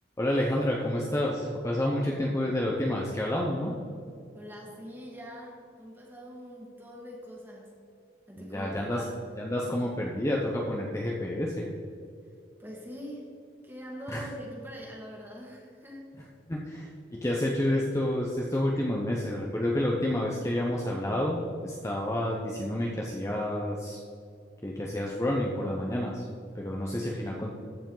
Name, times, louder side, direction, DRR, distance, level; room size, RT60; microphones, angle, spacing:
voice 1, 0.2-3.7 8.4-9.1 9.4-11.7 14.1-14.3 16.5-24.0 24.6-26.3 26.5-27.5, left 1 dB, 15° left, -2 dB, 0.7 m, -29 dB
voice 2, 4.3-7.7 8.3-9.3 12.6-13.3 13.6-16.2, equal, 10° right, -2 dB, 1.8 m, -43 dB
14.0 x 5.1 x 3.9 m, 2.4 s
head